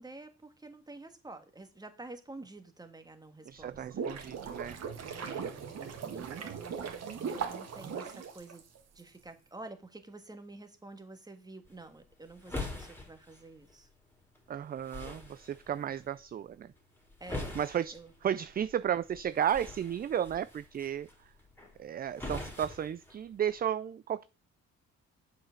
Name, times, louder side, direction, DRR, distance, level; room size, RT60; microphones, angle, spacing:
voice 1, 0.0-4.2 5.1-5.5 6.1-8.6 8.9-13.9 15.8-16.0 17.2-17.6 17.9-18.1, right 2 dB, 15° right, 1.5 m, -49 dB
voice 2, 3.5-4.8 5.8-6.4 14.5-16.7 17.5-17.9 18.2-21.1 21.8-24.3, right 9 dB, 30° right, 0.4 m, -34 dB
sound 1, 3.6-9.0, right 6 dB, 55° right, 1.9 m, -39 dB
sound 2, 11.6-23.7, left 2 dB, 5° left, 2.7 m, -45 dB
7.6 x 4.8 x 6.3 m
cardioid pair, 90°, 30 cm